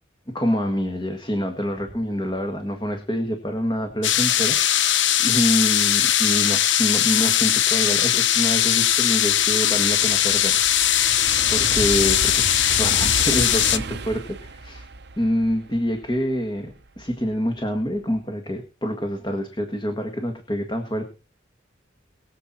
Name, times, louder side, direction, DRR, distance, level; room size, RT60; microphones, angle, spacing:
voice 1, 0.3-14.9 15.2-21.0, equal, 20° left, 5 dB, 1.8 m, -26 dB
sound 1, 4.0-13.8, left 11 dB, 65° left, 0.9 m, -20 dB
sound 2, 7.7-7.8 8.3-17.3 17.7-18.1, right 3 dB, 55° right, 0.9 m, -34 dB
22.0 x 7.6 x 4.2 m, 0.33 s
head